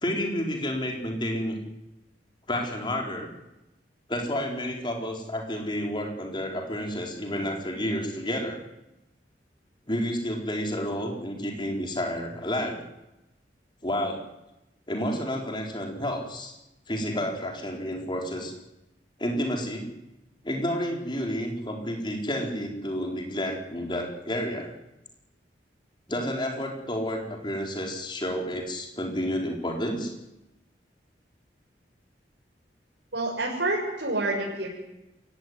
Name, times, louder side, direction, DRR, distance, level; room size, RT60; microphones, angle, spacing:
voice 1, 0.0-1.6 2.5-3.3 4.1-8.6 9.9-12.8 13.8-14.2 14.9-16.5 16.9-18.5 19.2-19.9 20.4-24.7 26.1-30.1, equal, 25° left, 1 dB, 4.5 m, -30 dB
voice 2, 33.1-34.7, right 2 dB, 90° right, -3 dB, 6.5 m, -28 dB
28.0 x 16.5 x 9.8 m, 0.96 s
head